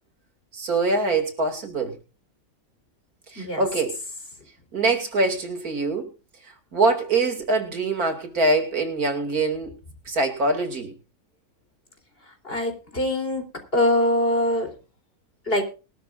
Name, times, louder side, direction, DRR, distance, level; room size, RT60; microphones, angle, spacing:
voice 1, 0.5-1.9 3.3-4.0 4.7-6.1 6.7-9.7 10.1-10.9, right 3 dB, 85° right, 6 dB, 3.1 m, -24 dB
voice 2, 12.4-13.5 13.7-14.7 15.5-15.6, left 1 dB, 40° left, 5 dB, 4.1 m, -23 dB
20.5 x 13.0 x 2.6 m, 0.33 s
omnidirectional pair, 1.5 m